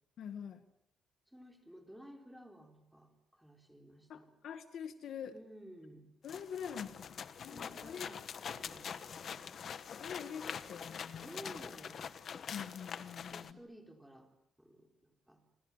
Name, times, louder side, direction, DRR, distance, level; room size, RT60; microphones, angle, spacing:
voice 1, 0.2-0.6 4.1-5.3 6.2-8.1 10.0-11.4 12.5-13.6, left 8 dB, 60° left, 9 dB, 1.9 m, -45 dB
voice 2, 1.3-4.3 5.3-6.1 7.5-9.4 11.2-12.0 13.3-14.3 14.6-15.4, equal, ahead, 3 dB, 4.0 m, -54 dB
sound 1, 6.2-13.5, left 7 dB, 40° left, 1.2 m, -44 dB
29.5 x 25.5 x 7.4 m, 0.77 s
cardioid pair, 175°, 0 cm